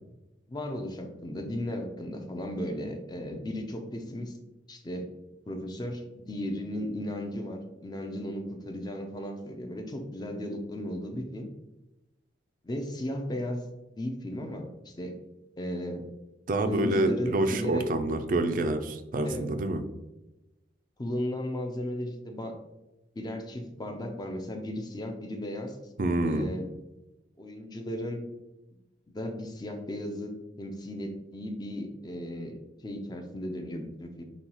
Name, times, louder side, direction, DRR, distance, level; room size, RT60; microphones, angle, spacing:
voice 1, 0.5-4.4 4.7-5.1 5.5-11.5 12.6-15.2 15.6-16.1 16.6-17.9 19.2-19.5 21.0-22.5 23.2-25.8 26.2-26.7 27.4-28.2 29.1-32.5 32.8-34.2, left 1 dB, 20° left, 4 dB, 0.5 m, -35 dB
voice 2, 16.5-19.8 26.0-26.5, right 2 dB, 45° right, 8 dB, 0.4 m, -27 dB
6.9 x 2.3 x 3.0 m, 1.0 s
head